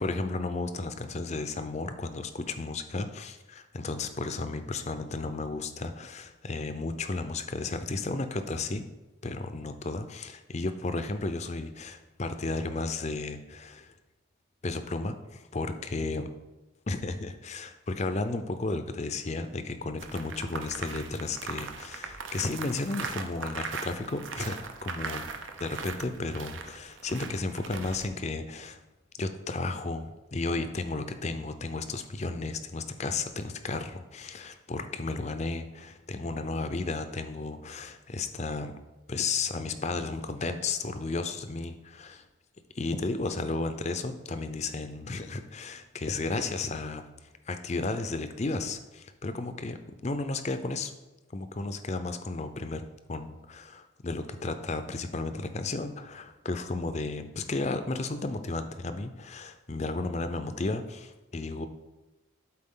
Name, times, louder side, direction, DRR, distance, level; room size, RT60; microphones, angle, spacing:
voice 1, 0.0-8.8 9.2-13.9 14.6-16.3 16.9-25.3 25.6-28.8 29.2-38.8 39.1-42.2 42.7-47.1 47.5-49.8 50.0-50.9 51.3-61.7, left 3 dB, 35° left, 9 dB, 0.5 m, -33 dB
sound 1, 20.0-28.1, right 5 dB, 70° right, 0.7 m, -39 dB
12.0 x 4.2 x 3.8 m, 1.1 s
head